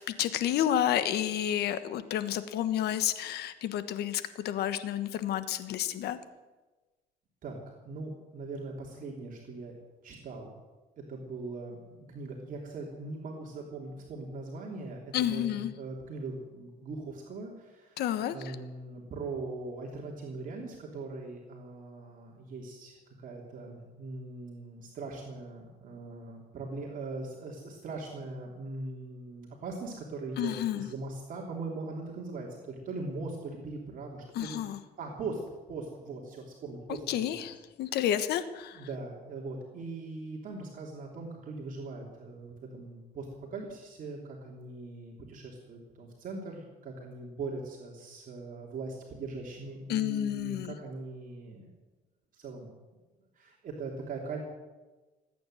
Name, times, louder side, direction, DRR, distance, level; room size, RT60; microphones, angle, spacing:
voice 1, 0.0-6.2 15.1-15.7 18.0-18.4 30.4-30.9 34.3-34.8 37.1-38.8 49.9-50.7, left 11 dB, 75° left, 12 dB, 1.3 m, -30 dB
voice 2, 7.4-9.7 10.0-10.6 11.1-18.0 18.3-35.4 35.7-37.5 37.9-38.1 38.7-51.7 52.3-52.7 53.3-54.4, right 3 dB, 55° right, -1 dB, 3.1 m, -41 dB
19.5 x 9.5 x 7.8 m, 1.2 s
cardioid pair, 110°, 17 cm